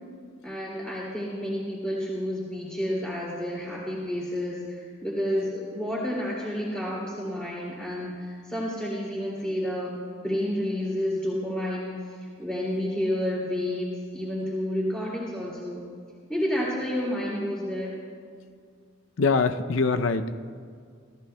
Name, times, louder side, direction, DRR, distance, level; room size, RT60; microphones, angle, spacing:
voice 1, 0.4-9.9 10.2-15.8 16.3-17.9, equal, 5° left, -6 dB, 2.5 m, -30 dB
voice 2, 19.2-20.4, left 4 dB, 75° left, 9 dB, 0.6 m, -23 dB
28.0 x 14.0 x 2.2 m, 2.1 s
head